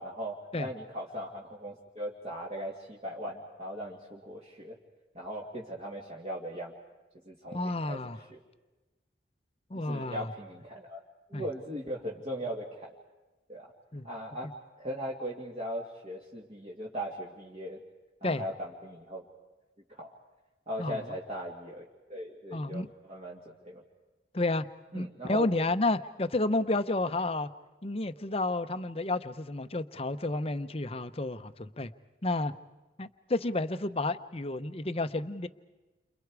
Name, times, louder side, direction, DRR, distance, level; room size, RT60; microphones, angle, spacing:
voice 1, 0.0-4.8 5.1-6.7 7.2-8.4 9.9-11.0 11.3-12.9 13.5-13.7 14.0-14.5 14.8-17.8 18.2-19.2 19.9-20.1 20.7-21.8 22.1-23.8 24.9-25.5, equal, 35° right, -3 dB, 2.4 m, -39 dB
voice 2, 7.5-8.2 9.7-10.3 11.3-11.4 13.9-14.1 18.2-18.4 20.8-21.0 22.5-22.9 24.3-24.7 24.9-27.5 27.8-31.9 32.2-32.5 33.0-35.5, left 2 dB, 30° left, 11 dB, 0.8 m, -31 dB
30.0 x 27.5 x 4.8 m, 1.1 s
head